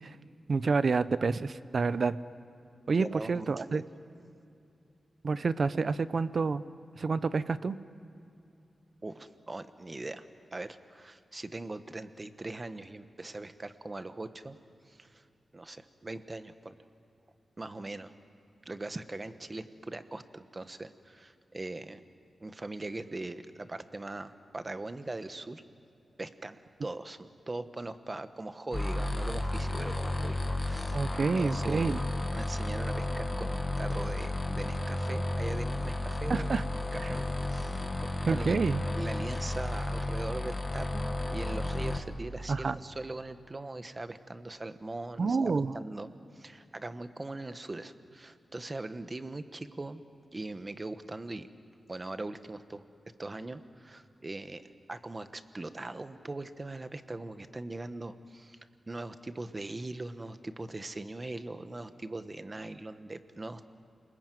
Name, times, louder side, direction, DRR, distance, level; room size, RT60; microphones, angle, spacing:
voice 1, 0.5-2.2 2.9-3.8 5.2-6.6 7.0-7.8 30.9-32.0 36.3-36.6 37.0-37.1 38.3-38.8 42.5-42.8 45.2-45.7, right 4 dB, 55° right, 14 dB, 0.7 m, -28 dB
voice 2, 3.0-3.8 9.0-14.6 14.9-15.2 15.5-16.8 17.6-18.1 18.6-22.0 22.4-25.6 26.2-31.9 32.3-36.7 36.9-38.5 39.0-46.1 46.3-50.0 50.3-51.5 51.9-52.8 53.2-58.6 58.9-63.7, right 2 dB, 30° right, 10 dB, 1.2 m, -41 dB
sound 1, 28.7-42.0, left 1 dB, 25° left, 1.6 m, -33 dB
29.0 x 21.0 x 9.3 m, 2.6 s
wide cardioid pair, 105°, 0 cm